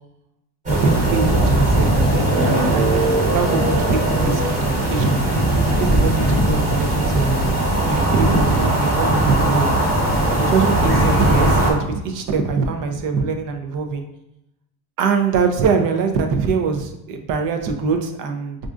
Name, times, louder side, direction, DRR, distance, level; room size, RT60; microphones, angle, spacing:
sound 1, 0.7-11.7, right 1 dB, 15° right, 1.0 m, -18 dB
voice 1, 0.8-5.2 5.7-7.5 7.9-9.7 10.5-14.0 15.0-18.6, right 5 dB, 45° right, 5 dB, 0.5 m, -23 dB
5.2 x 2.5 x 2.4 m, 0.84 s
cardioid pair, 150°, 46 cm